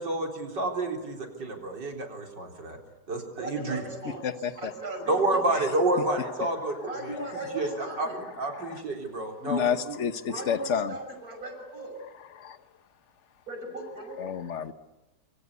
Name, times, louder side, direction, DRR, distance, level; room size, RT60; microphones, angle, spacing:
voice 1, 0.0-2.8 3.1-3.8 5.1-6.8 7.0-7.2 7.5-8.1 8.4-10.0, right 2 dB, 90° right, 2 dB, 4.7 m, -29 dB
voice 2, 3.4-4.2 4.6-5.2 5.7-5.8 6.8-8.2 10.3-11.9 13.5-14.3, right 2 dB, 55° right, 4 dB, 6.7 m, -38 dB
voice 3, 4.2-4.7 8.5-8.8 9.4-11.0 12.4-12.6 14.2-14.7, left 7 dB, 45° left, 11 dB, 1.4 m, -30 dB
26.5 x 25.5 x 8.3 m, 1.1 s
omnidirectional pair, 1.8 m